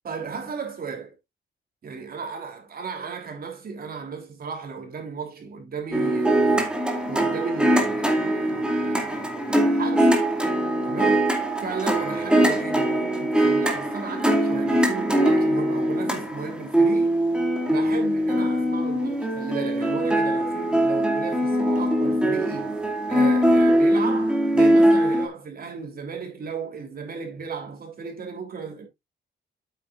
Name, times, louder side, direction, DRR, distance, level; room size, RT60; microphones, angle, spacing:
voice 1, 0.0-1.1 1.8-6.7 7.1-10.2 10.8-11.3 11.6-17.2 17.7-22.8 23.1-28.9, right 5 dB, 50° right, 3.4 m, -34 dB
sound 1, 5.9-25.3, right 1 dB, 5° right, 2.4 m, -22 dB
8.7 x 8.6 x 2.5 m
cardioid pair, 90°, 20 cm